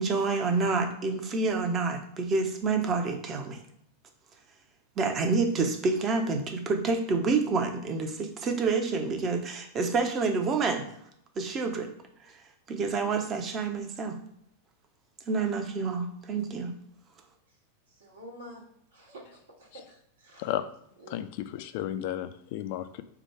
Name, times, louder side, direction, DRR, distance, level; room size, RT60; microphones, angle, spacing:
voice 1, 0.0-3.6 5.0-10.9 11.4-11.9 12.2-12.3 12.7-14.2 15.3-16.8, right 4 dB, 30° right, 0.7 m, -28 dB
voice 2, 18.0-18.6 18.9-20.5 21.0-21.2, equal, 65° right, 1.2 m, -48 dB
voice 3, 21.1-23.0, left 12 dB, 50° left, 0.3 m, -33 dB
4.7 x 2.2 x 4.6 m
figure-of-eight pair, 90°, 0 cm